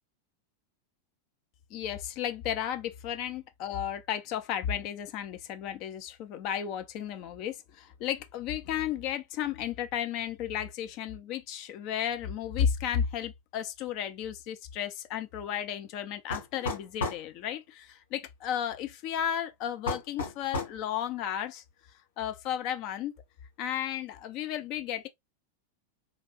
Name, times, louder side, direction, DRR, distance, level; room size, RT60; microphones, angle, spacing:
voice 1, 1.7-21.6 22.2-23.1 23.6-25.1, left 9 dB, 40° left, 0.5 m, -33 dB
sound 1, 16.3-17.3 19.9-20.8, left 3 dB, 65° left, 1.6 m, -33 dB
3.2 x 2.4 x 2.9 m
figure-of-eight pair, 90°, 0 cm